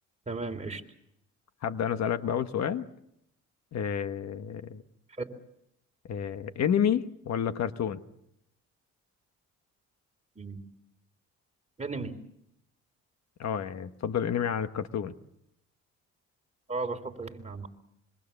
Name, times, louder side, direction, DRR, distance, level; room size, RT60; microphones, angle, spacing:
voice 1, 0.3-0.8 5.2-5.3 10.3-10.6 11.8-12.2 16.7-17.7, right 3 dB, 25° right, 4 dB, 3.3 m, -35 dB
voice 2, 1.6-2.9 3.7-4.8 6.1-8.0 13.4-15.1, left 8 dB, 60° left, 10 dB, 1.3 m, -29 dB
26.0 x 23.5 x 7.0 m, 0.77 s
cardioid pair, 90°, 30 cm